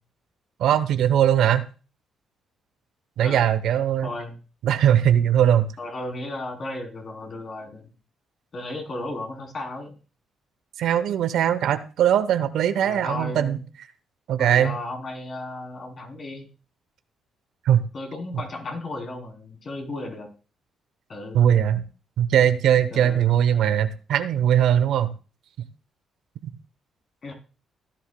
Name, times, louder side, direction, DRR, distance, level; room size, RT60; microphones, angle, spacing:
voice 1, 0.6-1.7 3.2-4.1 4.6-5.7 10.8-13.6 14.3-14.8 17.6-17.8 21.3-21.8 22.2-25.1 26.4-26.5, right 10 dB, 80° right, 12 dB, 0.9 m, -20 dB
voice 2, 3.2-3.5 4.0-4.3 5.8-7.9 8.5-10.0 12.8-13.6 14.4-16.5 17.9-20.3 21.1-21.4 22.9-23.3 27.2-27.3, left 2 dB, 45° left, 2 dB, 3.3 m, -34 dB
16.5 x 10.5 x 2.2 m, 0.35 s
cardioid pair, 90°, 0 cm